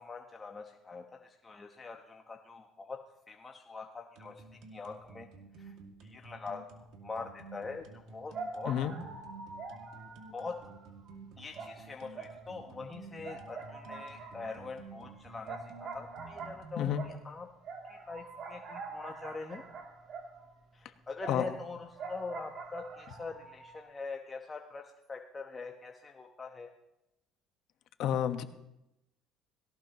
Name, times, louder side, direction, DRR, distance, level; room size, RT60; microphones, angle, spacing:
voice 1, 0.0-3.0 3.3-5.3 5.6-5.7 6.0-8.7 10.3-10.6 11.4-17.5 17.9-19.6 20.7-24.8 25.1-26.7, left 4 dB, 20° left, 2 dB, 1.0 m, -43 dB
sound 1, 4.1-17.0, right 4 dB, 70° right, 2.2 m, -51 dB
sound 2, 7.7-7.8 8.3-11.2 11.5-12.9 13.2-20.6 21.2-23.8, right 4 dB, 50° right, 2.7 m, -45 dB
voice 2, 28.0-28.4, left 10 dB, 60° left, 8 dB, 1.2 m, -29 dB
17.5 x 17.5 x 3.0 m, 0.88 s
cardioid pair, 120°, 0 cm